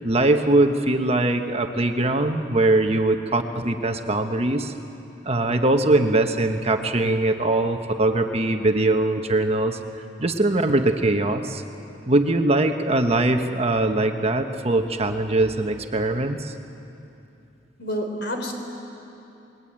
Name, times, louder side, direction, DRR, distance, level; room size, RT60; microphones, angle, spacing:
voice 1, 0.0-4.7 5.2-9.8 10.2-11.6 12.1-16.5, right 2 dB, 35° right, 6 dB, 1.2 m, -21 dB
voice 2, 17.8-18.5, equal, 65° left, 4 dB, 4.0 m, -28 dB
28.5 x 21.0 x 8.8 m, 2.8 s
head